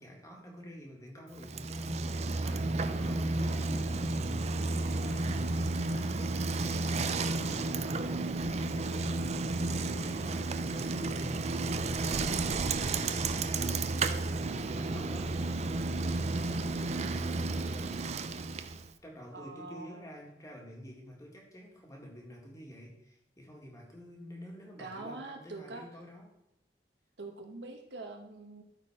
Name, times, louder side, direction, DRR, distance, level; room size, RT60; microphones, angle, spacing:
voice 1, 0.0-2.1 2.4-13.9 14.3-18.1 19.0-26.3, equal, 20° left, -1 dB, 2.1 m, -49 dB
Bicycle, 1.4-18.9, right 3 dB, 40° right, 0.5 m, -32 dB
voice 2, 19.3-20.0 24.8-25.8 27.2-28.6, right 2 dB, 85° right, 3 dB, 1.4 m, -44 dB
13.0 x 4.5 x 5.0 m, 0.83 s
head